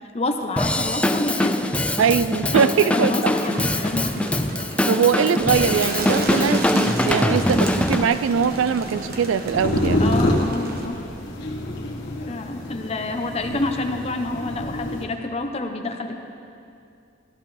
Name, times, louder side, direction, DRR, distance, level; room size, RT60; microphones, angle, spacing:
voice 1, 0.1-1.6 2.5-4.5 7.4-7.6 10.0-11.1 12.3-16.2, left 2 dB, 30° left, 4 dB, 0.8 m, -28 dB
Drum kit / Drum, 0.6-8.1, left 1 dB, 5° left, 0.3 m, -23 dB
voice 2, 2.0-3.3 4.9-10.0, right 7 dB, 90° right, 13 dB, 0.4 m, -21 dB
Bird, 3.3-10.9, right 2 dB, 50° right, 1.2 m, -34 dB
sound 1, 5.4-15.0, left 1 dB, 65° left, 1.6 m, -28 dB
14.0 x 14.0 x 3.4 m, 2.5 s
head